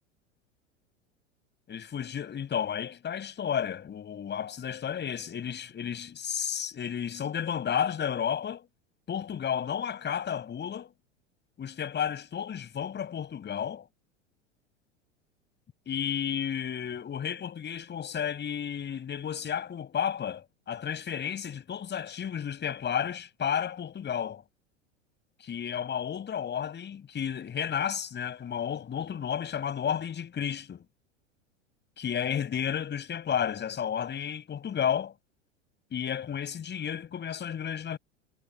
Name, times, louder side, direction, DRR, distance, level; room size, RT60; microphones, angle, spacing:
voice 1, 1.7-8.7 9.1-10.9 11.6-13.9 15.9-24.4 25.4-30.8 32.0-35.1 35.9-38.0, left 8 dB, 30° left, 7.4 m, -32 dB
hypercardioid pair, 90°, 37 cm